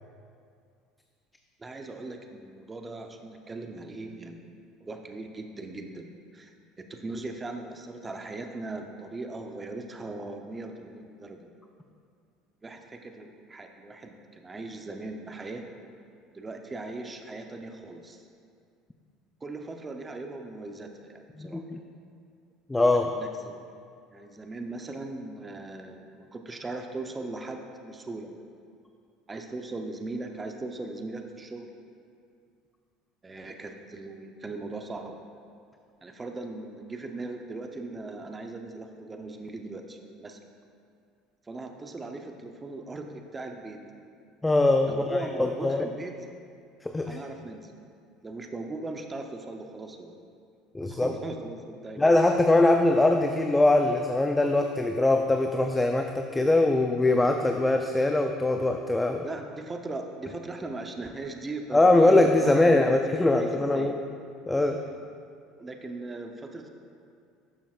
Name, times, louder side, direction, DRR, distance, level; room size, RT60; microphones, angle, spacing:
voice 1, 1.6-4.4 4.8-11.5 12.6-15.7 16.3-18.2 19.4-21.6 22.9-23.6 24.1-28.3 29.3-31.7 33.2-35.1 36.0-40.4 41.5-43.8 44.8-46.1 47.1-47.7 48.2-50.2 50.9-52.0 59.2-64.0 64.9-65.0 65.6-66.7, right 2 dB, 20° right, 4 dB, 0.7 m, -39 dB
voice 2, 21.4-21.8 22.7-23.1 44.4-45.9 46.8-47.2 50.7-51.1 52.0-59.3 61.7-64.0 64.5-64.8, left 2 dB, 10° left, 4 dB, 0.5 m, -22 dB
12.0 x 7.0 x 2.5 m, 2.3 s
hypercardioid pair, 80°, 0 cm